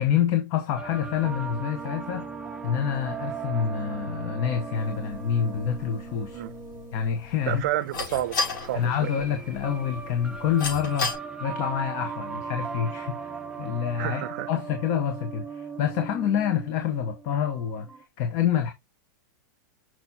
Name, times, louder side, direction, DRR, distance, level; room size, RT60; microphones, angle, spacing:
voice 1, 0.0-2.3 2.6-6.4 6.9-7.6 8.7-13.3 13.6-17.9 18.2-18.7, left 8 dB, 35° left, 0.9 m, -27 dB
sound 1, 0.8-18.0, right 5 dB, 10° right, 0.7 m, -38 dB
sound 2, 4.7-11.1, left 4 dB, 75° left, 5.1 m, -35 dB
voice 2, 7.5-9.1 14.0-14.5, right 14 dB, 50° right, 0.7 m, -30 dB
6.6 x 5.8 x 2.8 m
supercardioid pair, 165°, 11 cm